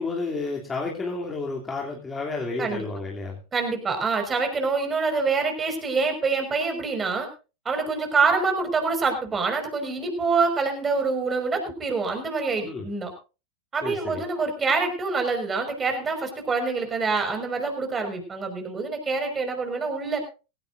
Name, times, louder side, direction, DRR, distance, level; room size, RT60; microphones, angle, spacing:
voice 1, 0.0-3.4 12.6-12.8 13.8-14.2, left 3 dB, 20° left, -2 dB, 3.0 m, -31 dB
voice 2, 3.5-7.3 7.7-13.1 13.7-20.2, right 4 dB, 20° right, 5 dB, 5.5 m, -26 dB
18.5 x 16.0 x 2.7 m, 0.32 s
hypercardioid pair, 100°, 0 cm